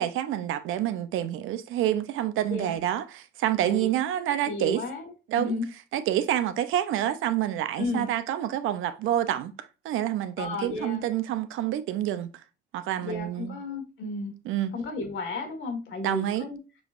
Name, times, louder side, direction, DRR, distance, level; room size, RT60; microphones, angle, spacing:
voice 1, 0.0-4.8 5.3-5.6 5.9-12.4 12.7-13.6 14.5-14.7 16.0-16.5, right 12 dB, 85° right, 0.6 m, -28 dB
voice 2, 4.4-5.6 7.8-8.1 10.4-11.0 13.0-14.3 14.7-16.6, left 3 dB, 75° left, 1.6 m, -33 dB
6.2 x 3.0 x 2.4 m
cardioid pair, 90°, 20 cm